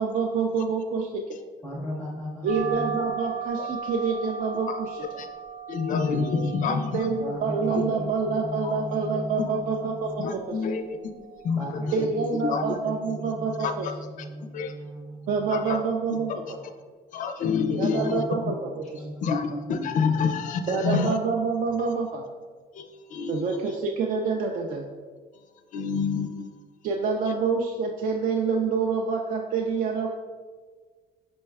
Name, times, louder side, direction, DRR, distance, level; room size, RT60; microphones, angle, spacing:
voice 1, 0.0-1.4 2.4-5.0 6.9-10.6 11.9-13.9 15.3-16.6 17.7-18.6 18.9-19.0 20.7-22.2 23.3-24.9 26.8-30.1, right 5 dB, 55° right, 2 dB, 0.4 m, -27 dB
voice 2, 1.6-3.0 7.2-10.2 11.6-15.8 16.1-16.5 17.9-20.7, equal, 5° left, -2 dB, 0.6 m, -37 dB
sound 1, 2.5-11.5, right 7 dB, 70° right, 1.1 m, -37 dB
voice 3, 5.7-7.1 7.7-7.8 8.6-8.7 9.4-9.5 10.2-11.0 11.4-11.6 12.0-12.1 12.4-12.8 13.6-13.9 14.5-14.7 15.5-15.8 16.1-16.4 17.1-18.2 19.2-21.1 22.7-23.4 25.7-26.3, left 5 dB, 50° left, 7 dB, 0.4 m, -27 dB
5.2 x 2.2 x 3.3 m, 1.5 s
cardioid pair, 110°, 17 cm